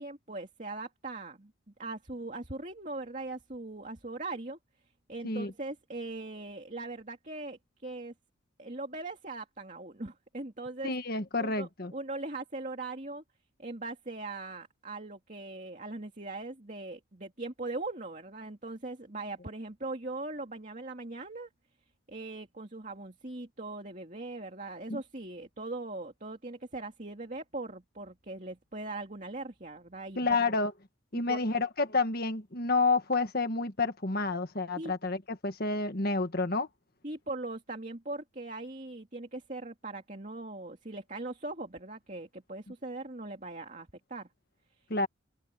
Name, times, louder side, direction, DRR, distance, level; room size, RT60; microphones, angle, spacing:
voice 1, 0.0-1.5 1.8-4.6 5.1-8.1 8.6-10.9 11.4-13.2 13.6-21.5 22.1-30.5 31.3-31.7 34.8-34.9 37.0-44.3, right 2 dB, 35° right, 2.6 m, -40 dB
voice 2, 10.8-11.9 24.9-25.0 30.1-30.7 31.1-36.7 44.9-45.1, left 3 dB, 45° left, 1.6 m, -29 dB
head